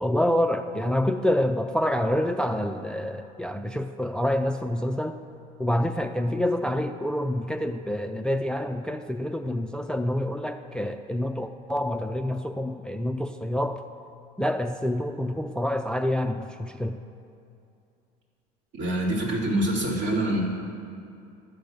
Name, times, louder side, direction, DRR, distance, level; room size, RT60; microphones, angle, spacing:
voice 1, 0.0-5.2 5.6-13.8 14.4-17.0, left 1 dB, 5° left, 8 dB, 0.4 m, -27 dB
voice 2, 18.7-20.4, right 1 dB, 65° right, -3 dB, 3.0 m, -25 dB
12.0 x 5.2 x 8.0 m, 2.5 s
hypercardioid pair, 80°, 21 cm